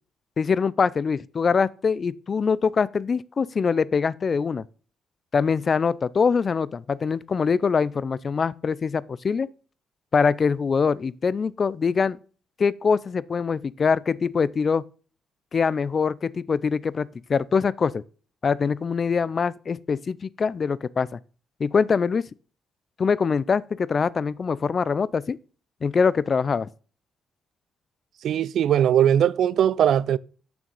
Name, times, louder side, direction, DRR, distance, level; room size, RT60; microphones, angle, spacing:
voice 1, 0.4-4.6 5.3-9.5 10.1-12.2 12.6-14.8 15.5-18.0 18.4-21.2 21.6-22.2 23.0-25.4 25.8-26.7, left 5 dB, 45° left, 0.4 m, -23 dB
voice 2, 28.2-30.2, right 10 dB, 70° right, 0.3 m, -20 dB
7.0 x 6.2 x 5.2 m
cardioid pair, 75°, 0 cm